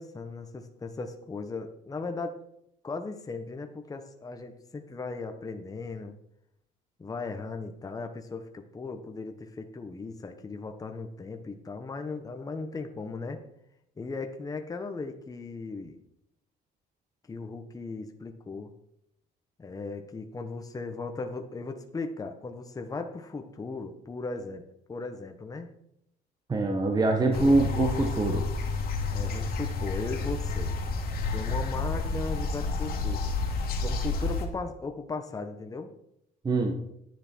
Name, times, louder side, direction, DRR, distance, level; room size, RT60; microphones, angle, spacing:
voice 1, 0.0-2.4 2.8-6.2 7.0-13.4 14.0-16.0 17.3-18.7 19.6-24.6 24.9-25.7 27.2-27.5 29.1-30.8 31.3-33.2 33.8-35.9, left 3 dB, 20° left, 5 dB, 1.1 m, -37 dB
voice 2, 26.5-28.5 36.4-36.8, right 2 dB, 25° right, 3 dB, 1.4 m, -24 dB
sound 1, 27.3-34.5, left 3 dB, 65° left, 2.2 m, -30 dB
9.9 x 9.8 x 4.5 m, 0.76 s
cardioid pair, 110°, 17 cm